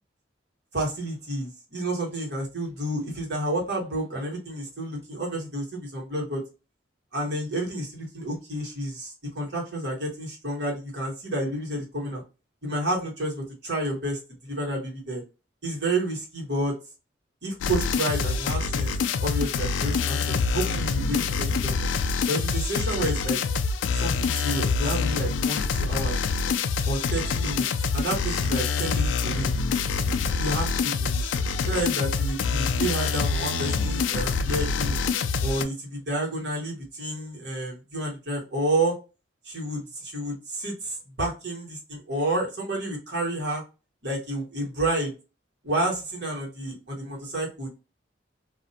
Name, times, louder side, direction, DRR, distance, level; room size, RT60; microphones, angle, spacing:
voice 1, 0.7-6.4 7.1-12.2 12.6-15.2 15.6-16.8 17.4-21.8 22.3-23.4 23.9-26.2 26.9-27.7 27.9-29.5 30.4-31.2 31.6-35.0 35.4-39.0 39.4-43.6 44.0-45.1 45.6-47.7, right 1 dB, 65° right, -2 dB, 1.3 m, -30 dB
sound 1, 17.6-35.6, left 5 dB, 85° left, 0.3 m, -26 dB
2.5 x 2.1 x 2.6 m, 0.30 s
head